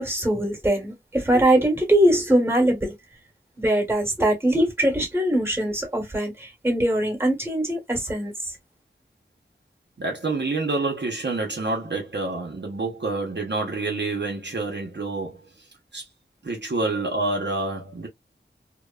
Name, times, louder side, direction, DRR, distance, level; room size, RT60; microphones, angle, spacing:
voice 1, 0.0-2.9 3.6-8.3, right 1 dB, 10° right, 1.3 m, -22 dB
voice 2, 10.0-15.5 15.9-16.0 16.4-18.1, right 3 dB, 65° right, 0.8 m, -27 dB
2.8 x 2.1 x 2.2 m
wide cardioid pair, 50°, 20 cm